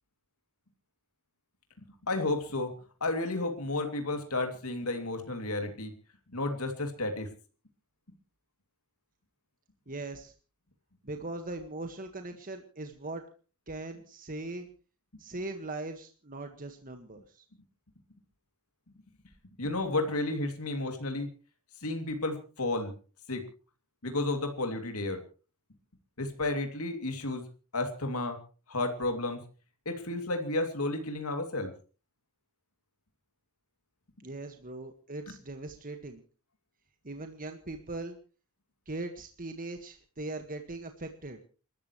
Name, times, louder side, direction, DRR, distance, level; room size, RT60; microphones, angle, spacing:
voice 1, 2.0-2.7 3.0-5.9 6.3-7.3 19.6-21.3 21.8-22.9 23.3-23.4 24.0-25.2 26.2-27.4 27.7-28.4 28.7-29.4 29.8-31.7, left 2 dB, 75° left, 5 dB, 2.9 m, -32 dB
voice 2, 9.9-10.3 11.0-13.2 13.7-14.7 15.2-17.5 34.2-36.2 37.0-38.2 38.9-41.4, right 2 dB, 40° right, 6 dB, 1.7 m, -40 dB
29.5 x 13.5 x 3.2 m, 0.37 s
head